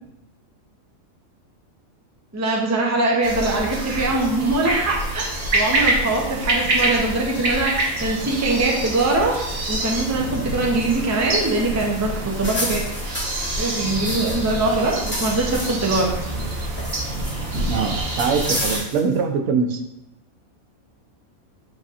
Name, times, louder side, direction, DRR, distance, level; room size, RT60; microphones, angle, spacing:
voice 1, 2.3-5.2 5.5-9.3 9.7-12.8 13.6-16.1, right 2 dB, 25° right, -1 dB, 0.4 m, -22 dB
sound 1, 3.2-18.8, right 2 dB, 55° right, 1.4 m, -26 dB
sound 2, 12.3-14.5 14.8-16.0 16.4-17.6 18.2-19.2, left 1 dB, 10° left, 0.8 m, -31 dB
voice 2, 17.7-19.8, right 5 dB, 85° right, 5 dB, 1.1 m, -22 dB
7.9 x 2.7 x 2.4 m, 0.84 s
omnidirectional pair, 1.4 m